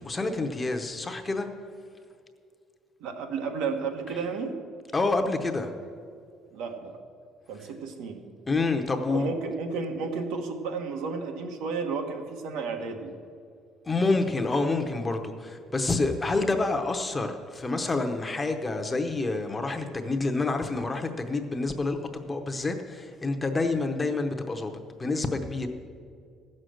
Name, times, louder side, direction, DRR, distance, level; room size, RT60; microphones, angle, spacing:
voice 1, 0.0-1.5 4.1-4.2 4.9-5.8 8.5-9.3 13.8-25.7, left 3 dB, 15° left, 5 dB, 0.7 m, -28 dB
voice 2, 3.0-4.6 6.5-6.9 7.5-8.2 9.1-13.1, right 4 dB, 90° right, 4 dB, 1.4 m, -32 dB
15.0 x 6.4 x 7.7 m, 2.3 s
cardioid pair, 165°, 0 cm